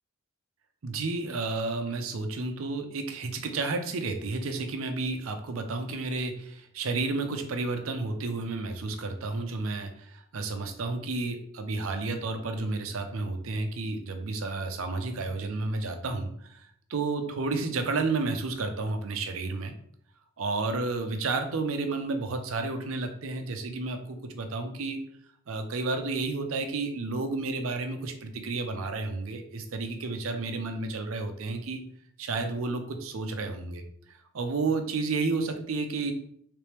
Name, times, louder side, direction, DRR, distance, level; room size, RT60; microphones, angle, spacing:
voice 1, 0.8-19.7 20.4-25.0 25.5-31.8 32.2-33.8 34.1-36.1, right 3 dB, 75° right, 6 dB, 0.6 m, -31 dB
3.3 x 3.1 x 3.3 m, 0.66 s
head